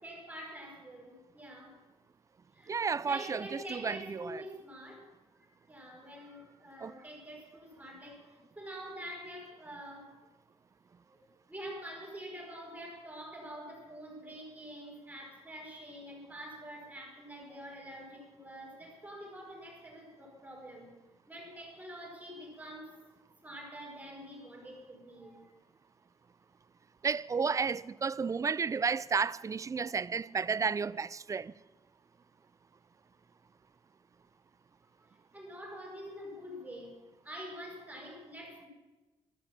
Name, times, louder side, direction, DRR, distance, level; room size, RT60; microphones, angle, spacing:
voice 1, 0.0-1.7 2.5-5.0 5.3-10.1 11.1-11.2 11.5-20.9 21.3-23.0 23.4-25.5 35.3-36.9 37.2-38.7, equal, 15° right, 4.6 m, -46 dB
voice 2, 2.7-4.4 6.8-6.9 27.0-31.5, right 5 dB, 30° right, 0.4 m, -32 dB
15.0 x 13.0 x 5.9 m
cardioid pair, 90°, 11 cm